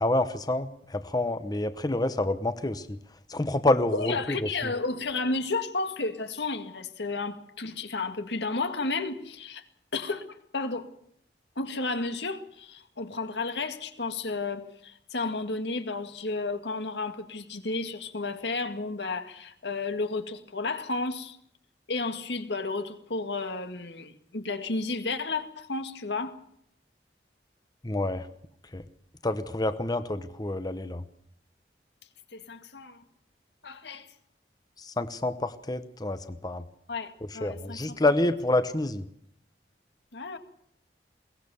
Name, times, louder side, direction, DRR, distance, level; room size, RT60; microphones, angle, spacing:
voice 1, 0.0-3.0 3.3-4.4 27.8-28.3 28.7-28.8 29.2-31.0 34.8-36.6 37.4-39.1, left 2 dB, 25° left, 0.9 m, -28 dB
voice 2, 3.9-9.7 9.9-10.9 11.6-21.4 21.9-26.4 32.0-33.1 33.6-34.2 36.9-38.0 40.1-40.4, left 3 dB, 75° left, 1.9 m, -32 dB
22.0 x 18.5 x 7.1 m
head